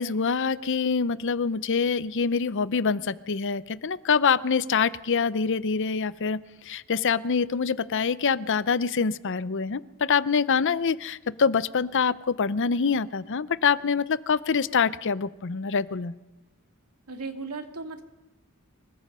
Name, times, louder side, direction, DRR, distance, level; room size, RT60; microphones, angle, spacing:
voice 1, 0.0-6.4 6.6-16.1, left 5 dB, 55° left, 17 dB, 0.6 m, -25 dB
voice 2, 17.1-18.0, right 3 dB, 90° right, 4 dB, 2.5 m, -36 dB
25.0 x 22.0 x 5.5 m, 1.0 s
head